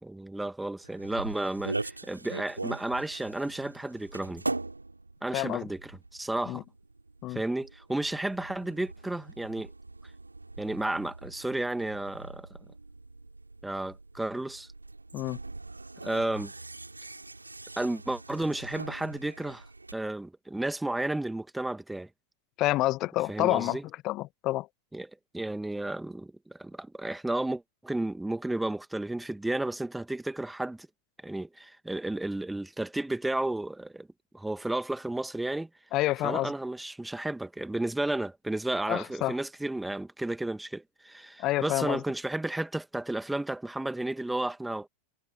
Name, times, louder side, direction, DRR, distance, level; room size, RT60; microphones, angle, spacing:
voice 1, 0.0-4.4 5.2-6.6 7.3-9.7 10.6-12.5 13.6-14.7 16.0-16.5 17.8-19.6 19.9-22.1 23.3-23.8 24.9-30.9 31.2-34.1 34.3-35.7 36.2-44.9, right 2 dB, 5° right, 2.0 m, -32 dB
sound 1, 0.8-19.9, right 2 dB, 80° right, 5.3 m, -42 dB
voice 2, 5.3-5.6 6.5-6.6 7.2-7.4 15.1-15.4 22.6-23.8 24.0-24.7 35.9-36.5 38.9-39.3 41.4-42.0, left 17 dB, 35° left, 1.3 m, -28 dB
figure-of-eight pair, 90°, 0 cm